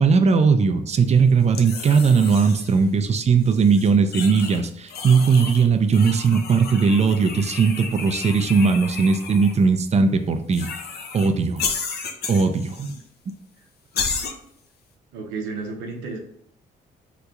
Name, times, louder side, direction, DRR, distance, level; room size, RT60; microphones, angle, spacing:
voice 1, 0.0-10.7 11.1-11.7 12.3-12.8, right 5 dB, 35° right, 8 dB, 0.4 m, -18 dB
sound 1, 1.5-2.8 3.4-4.6 4.9-5.7 5.9-9.6 10.5-11.3 11.6-13.0 13.3-13.4 13.9-14.3, left 5 dB, 55° left, 0.6 m, -32 dB
voice 2, 15.1-16.2, right 4 dB, 85° right, 2 dB, 0.6 m, -32 dB
2.9 x 2.2 x 3.7 m, 0.70 s
hypercardioid pair, 55°, 20 cm